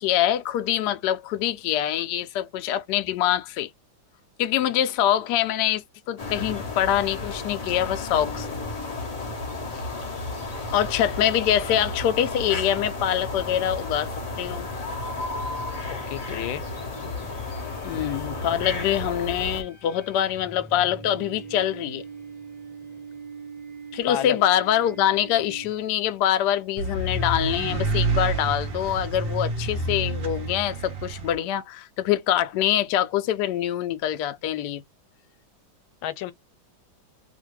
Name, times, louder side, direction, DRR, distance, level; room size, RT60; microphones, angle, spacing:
voice 1, 0.0-3.7 4.4-8.5 10.7-14.1 14.4-14.7 17.8-22.0 23.9-34.8, left 11 dB, 70° left, 1.1 m, -24 dB
sound 1, 6.2-19.6, left 2 dB, 55° left, 0.4 m, -33 dB
sound 2, 15.1-26.1, right 4 dB, 10° left, 0.7 m, -44 dB
voice 2, 15.9-16.6 24.1-24.4 36.0-36.3, left 12 dB, 90° left, 1.4 m, -30 dB
sound 3, 26.8-31.4, right 2 dB, 75° right, 0.5 m, -28 dB
2.8 x 2.6 x 3.0 m
omnidirectional pair, 2.1 m